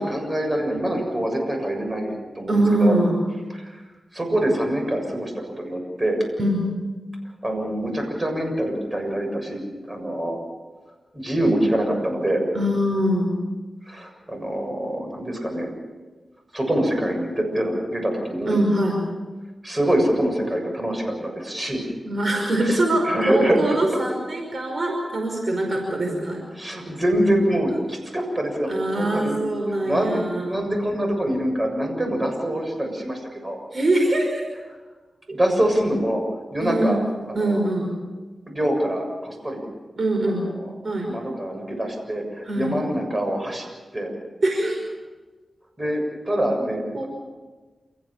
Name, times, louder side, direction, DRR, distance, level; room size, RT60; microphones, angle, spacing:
voice 1, 0.0-3.0 3.5-3.8 4.1-6.2 7.4-10.4 11.1-12.4 13.9-15.7 16.5-18.6 19.6-21.8 22.6-23.6 26.6-29.4 29.8-33.6 35.3-36.2 36.5-37.0 37.3-37.7 38.5-39.7 41.1-43.7 43.9-44.1 45.8-47.1, right 1 dB, 30° right, 3 dB, 7.1 m, -25 dB
voice 2, 2.5-3.1 6.4-6.7 12.5-13.4 18.5-19.0 22.0-26.4 28.7-30.6 33.7-34.4 35.3-35.4 36.6-37.1 37.3-37.9 40.0-40.5 40.8-41.2 42.5-42.8 44.4-44.8 46.9-47.1, right 1 dB, 55° right, 2 dB, 5.2 m, -23 dB
29.0 x 15.0 x 7.4 m, 1.3 s
cardioid pair, 50°, 0 cm